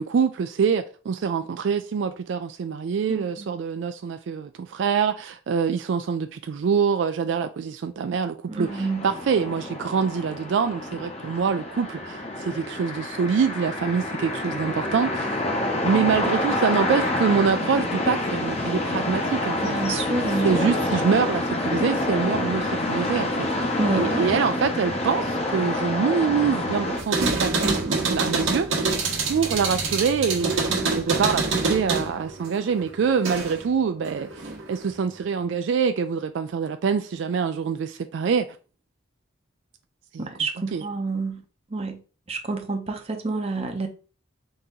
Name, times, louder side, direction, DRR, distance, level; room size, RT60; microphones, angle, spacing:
voice 1, 0.0-15.4 15.8-20.1 20.3-23.5 23.9-38.5 40.1-40.3 40.5-40.9, right 6 dB, 65° right, 0.3 m, -25 dB
voice 2, 8.5-9.0 19.6-20.5 23.8-24.2 27.6-28.2 40.2-41.4 41.7-42.0 42.3-43.9, right 3 dB, 30° right, 0.6 m, -28 dB
sound 1, 8.7-27.0, left 1 dB, 30° left, 0.7 m, -27 dB
sound 2, 27.0-33.7 34.1-34.9, right 3 dB, 85° right, 1.1 m, -26 dB
4.0 x 2.8 x 3.7 m
head